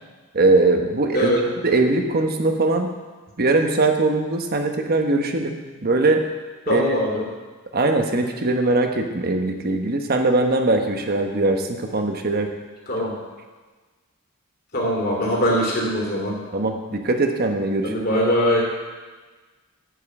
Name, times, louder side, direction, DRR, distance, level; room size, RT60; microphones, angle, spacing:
voice 1, 0.3-1.3 1.6-2.9 3.4-6.2 6.7-6.8 7.7-12.5 16.5-17.9, right 2 dB, 45° right, 5 dB, 1.0 m, -21 dB
voice 2, 1.1-1.5 6.7-7.3 12.9-13.1 14.7-16.4 17.8-18.6, equal, 45° left, -3 dB, 3.1 m, -21 dB
10.0 x 5.6 x 8.3 m, 1.3 s
head